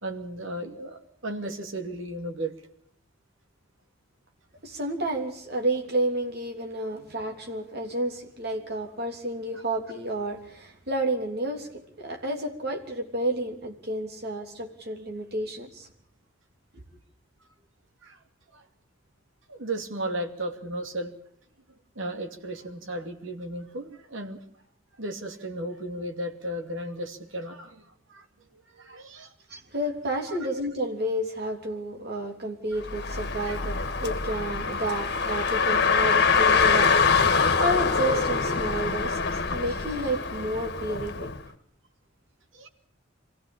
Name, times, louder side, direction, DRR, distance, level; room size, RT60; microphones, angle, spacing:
voice 1, 0.0-2.6 18.0-18.2 18.5-18.7 19.5-21.1 22.0-24.4 25.0-28.2 28.7-29.3 30.3-30.4 32.7-32.8 33.5-33.6 42.5-42.7, right 1 dB, 70° right, 4 dB, 2.6 m, -35 dB
voice 2, 4.6-15.9 29.5-41.3, right 1 dB, 50° right, 3 dB, 3.4 m, -31 dB
Car, 32.8-41.4, left 5 dB, 55° left, 1.7 m, -24 dB
24.5 x 16.0 x 8.6 m, 0.65 s
head